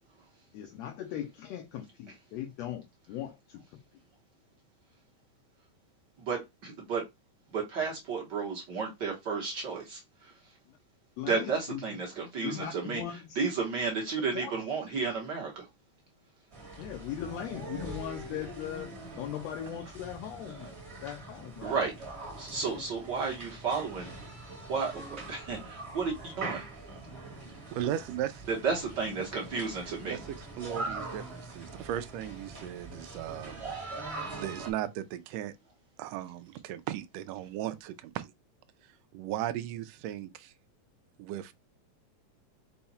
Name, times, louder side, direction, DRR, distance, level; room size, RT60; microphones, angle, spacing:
voice 1, 0.5-3.8 10.7-10.8 11.2-11.8 12.4-13.4 14.3-14.5 16.8-18.9 19.2-20.7 21.0-21.8 22.6-22.8, left 10 dB, 75° left, 1.7 m, -39 dB
voice 2, 6.2-7.0 7.5-10.3 11.3-13.0 13.3-15.7 21.6-21.9 22.2-24.1 24.7-26.6 28.5-30.2, right 5 dB, 55° right, 1.2 m, -32 dB
sound 1, 16.5-34.7, right 2 dB, 35° right, 1.1 m, -43 dB
voice 3, 27.7-28.5 30.1-35.5 36.0-38.3 39.1-40.5 41.2-41.5, right 12 dB, 80° right, 1.5 m, -37 dB
5.5 x 2.3 x 4.1 m
omnidirectional pair, 3.4 m